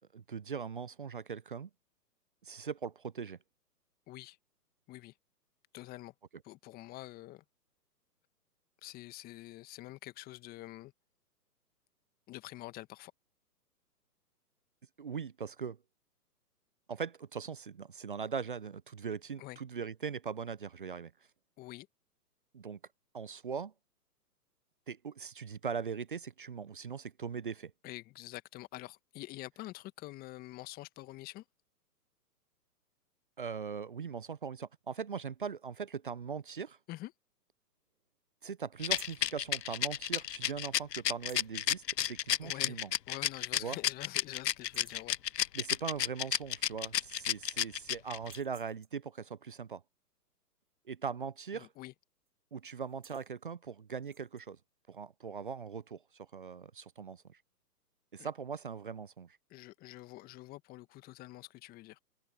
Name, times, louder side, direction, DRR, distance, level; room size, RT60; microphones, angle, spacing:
voice 1, 0.1-1.7 2.4-3.4 15.0-15.8 16.9-21.1 22.5-22.8 23.1-23.7 24.9-27.7 33.4-36.8 38.4-42.9 43.6-43.8 45.5-49.8 50.9-51.7 52.5-54.6 54.9-57.4 58.1-59.4, right 6 dB, 35° right, 0.4 m, -40 dB
voice 2, 5.7-6.1 6.4-7.4 8.8-10.9 12.3-13.1 19.4-19.6 21.6-21.9 27.8-31.4 36.9-37.1 42.4-45.2 51.5-51.9 58.2-58.3 59.5-62.0, left 17 dB, 20° left, 1.6 m, -46 dB
Rattle, 38.8-48.4, left 11 dB, 85° left, 0.5 m, -31 dB
sound 1, 38.8-39.3 41.1-41.7 43.0-43.1 43.6-43.7 44.1-44.3 44.6-45.1 46.5-46.6 46.9-47.6 48.1-49.1 51.4-51.7 52.0-52.3 52.7-53.3 54.0-54.5, right 6 dB, 75° right, 3.9 m, -57 dB
figure-of-eight pair, 130°, 48 cm